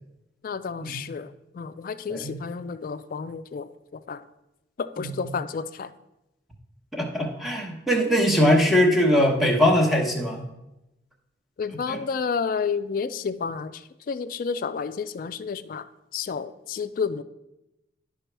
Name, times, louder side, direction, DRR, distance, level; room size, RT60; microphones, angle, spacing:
voice 1, 0.4-1.3 1.5-4.2 4.8-5.9 11.6-15.9 16.1-17.2, left 5 dB, 50° left, 10 dB, 0.3 m, -31 dB
voice 2, 6.9-10.4 11.9-12.0, equal, ahead, 0 dB, 1.0 m, -21 dB
11.5 x 4.9 x 3.4 m, 0.92 s
head